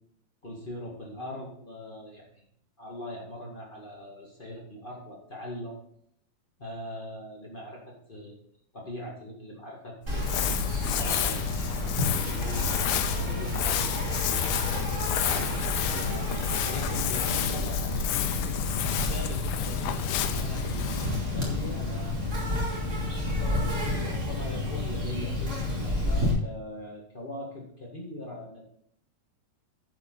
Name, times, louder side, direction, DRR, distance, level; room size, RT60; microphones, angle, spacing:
voice 1, 0.4-2.4 2.8-5.8 6.6-7.8 8.1-8.4 8.7-10.4 10.8-12.7 13.2-18.4 19.0-20.0 20.3-22.4 23.1-28.6, left 1 dB, 40° left, -2 dB, 0.7 m, -41 dB
Crumpling crinkling, 10.1-22.5, left 8 dB, 90° left, 2.6 m, -30 dB
Insect, 10.1-26.3, left 1 dB, 20° right, 2.5 m, -31 dB
10.5 x 7.4 x 3.9 m, 0.67 s
omnidirectional pair, 4.3 m